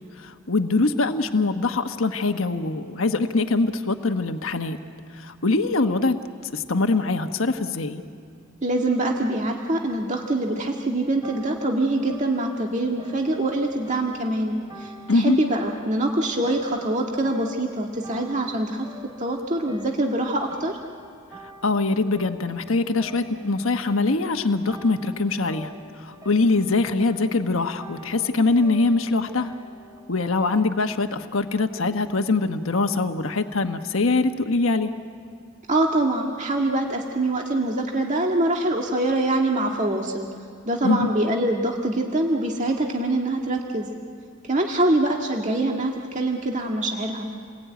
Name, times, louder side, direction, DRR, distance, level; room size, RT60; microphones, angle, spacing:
voice 1, 0.2-4.8 5.2-6.2 6.5-8.0 15.1-15.4 21.6-25.7 26.0-29.5 30.1-34.9 40.8-41.1, left 3 dB, 80° left, 6 dB, 1.2 m, -23 dB
voice 2, 8.6-18.9 19.2-20.8 35.7-40.3 40.7-43.9 44.5-47.3, right 1 dB, 35° right, 0 dB, 1.8 m, -24 dB
sound 1, 11.0-30.3, right 1 dB, 20° right, 3.7 m, -47 dB
29.5 x 21.0 x 9.3 m, 2.3 s
head